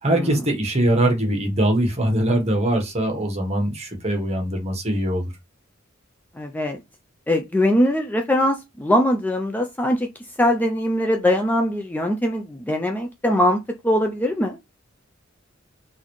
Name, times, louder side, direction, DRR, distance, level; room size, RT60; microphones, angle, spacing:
voice 1, 0.0-5.3, right 1 dB, 30° right, 1.2 m, -22 dB
voice 2, 6.4-6.8 7.3-10.1 10.4-14.6, left 1 dB, 10° left, 0.4 m, -21 dB
3.9 x 2.6 x 3.0 m
head